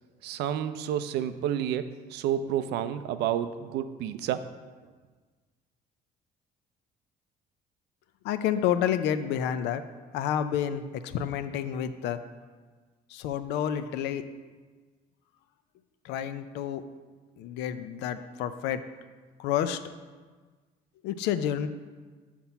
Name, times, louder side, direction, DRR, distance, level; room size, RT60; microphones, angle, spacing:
voice 1, 0.2-4.4, right 10 dB, 80° right, 12 dB, 0.4 m, -30 dB
voice 2, 8.2-9.8 10.1-12.2 13.1-14.2 16.0-16.8 17.4-18.8 19.4-19.8 21.0-21.7, left 9 dB, 90° left, 11 dB, 0.4 m, -29 dB
5.9 x 4.2 x 5.6 m, 1.4 s
cardioid pair, 110°, 17 cm